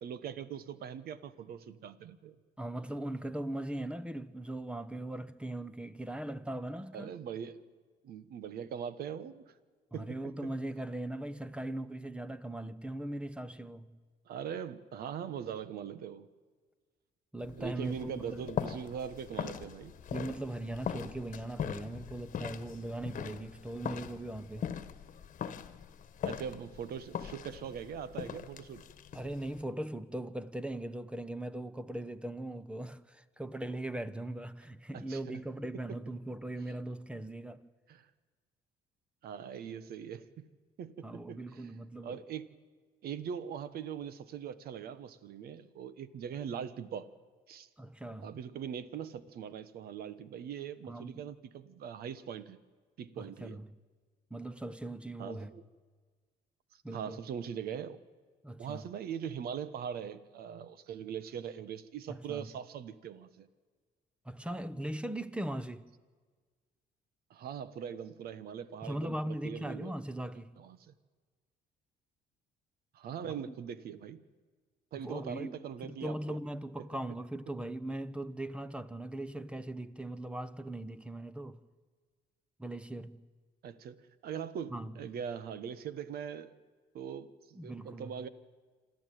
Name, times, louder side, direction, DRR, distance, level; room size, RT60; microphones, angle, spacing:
voice 1, 0.0-2.3 6.9-7.6 8.0-9.5 9.9-10.5 14.3-16.2 17.5-19.9 26.2-28.8 34.9-35.4 36.7-36.8 37.9-38.1 39.2-40.5 40.8-41.7 42.0-42.5 43.0-47.1 47.5-47.7 48.2-52.6 53.0-53.6 55.2-55.6 56.7-58.0 58.6-63.5 67.3-69.9 70.6-70.9 72.9-74.2 74.9-76.4 76.8-76.9 83.6-86.6 86.9-88.3, right 8 dB, 65° right, 1.3 m, -41 dB
voice 2, 2.6-7.2 9.9-13.9 17.3-18.5 20.1-24.7 29.1-37.6 41.0-42.2 47.8-48.3 50.9-51.2 53.2-53.7 54.3-55.5 56.8-57.2 58.4-58.8 62.1-62.5 64.2-65.9 68.8-70.5 73.4-73.5 75.0-81.6 82.6-83.2 84.7-84.9 87.6-88.1, right 1 dB, 5° right, 1.0 m, -39 dB
sound 1, 17.4-29.6, left 8 dB, 50° left, 1.4 m, -41 dB
27.0 x 13.0 x 9.2 m
cardioid pair, 110°, 17 cm